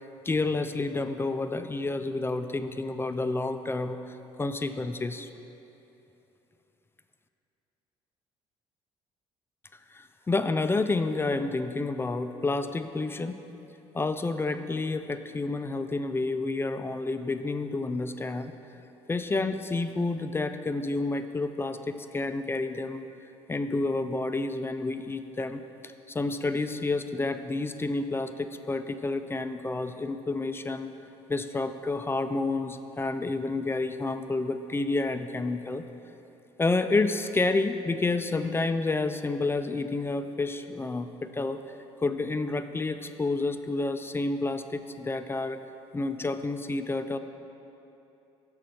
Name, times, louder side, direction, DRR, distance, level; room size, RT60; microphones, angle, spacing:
voice 1, 0.2-5.3 9.9-13.4 13.9-18.5 19.1-23.1 23.5-30.9 31.3-35.9 36.6-41.6 42.0-45.6 45.9-47.2, left 3 dB, 20° left, 9 dB, 0.3 m, -29 dB
6.3 x 6.2 x 4.3 m, 2.9 s
supercardioid pair, 65°, 13 cm